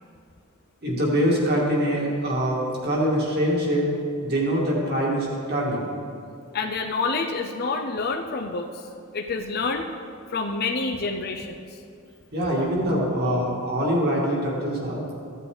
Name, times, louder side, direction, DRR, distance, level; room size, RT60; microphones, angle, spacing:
voice 1, 0.8-3.9 4.2-5.9 12.3-15.0, equal, 50° right, -4 dB, 2.4 m, -24 dB
voice 2, 6.5-8.7 9.1-9.9 10.3-11.6, left 3 dB, 45° left, 4 dB, 0.6 m, -27 dB
15.0 x 8.2 x 3.9 m, 2.4 s
head